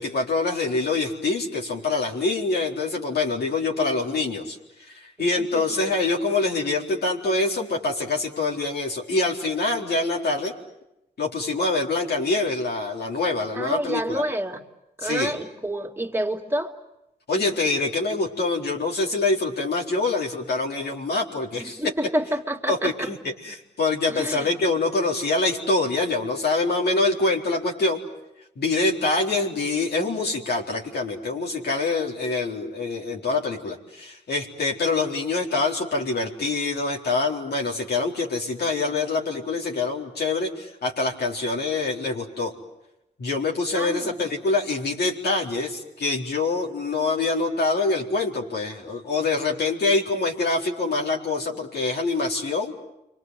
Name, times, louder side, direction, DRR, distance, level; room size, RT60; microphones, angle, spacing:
voice 1, 0.0-10.5 11.2-14.2 15.0-15.3 17.3-21.8 22.7-28.0 28.6-42.5 43.2-52.7, left 3 dB, 65° left, -1 dB, 4.2 m, -25 dB
voice 2, 13.5-14.6 15.0-16.7 21.6-23.1 24.0-24.5 43.7-44.1, right 1 dB, 15° right, 1 dB, 3.0 m, -28 dB
29.5 x 25.0 x 7.8 m, 0.90 s
cardioid pair, 65°, 18 cm